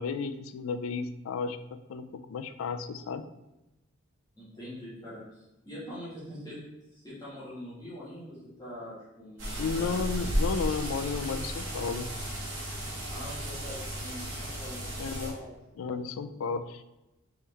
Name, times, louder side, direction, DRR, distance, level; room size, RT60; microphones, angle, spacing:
voice 1, 0.0-3.3 9.6-12.1 15.0-15.4 15.8-16.8, left 5 dB, 75° left, 11 dB, 0.3 m, -33 dB
voice 2, 4.4-6.6 6.9-9.9 13.1-15.5, left 1 dB, 20° left, -10 dB, 1.5 m, -44 dB
sound 1, 9.4-15.3, equal, 60° right, 1.4 m, -34 dB
4.1 x 3.8 x 3.2 m, 0.96 s
head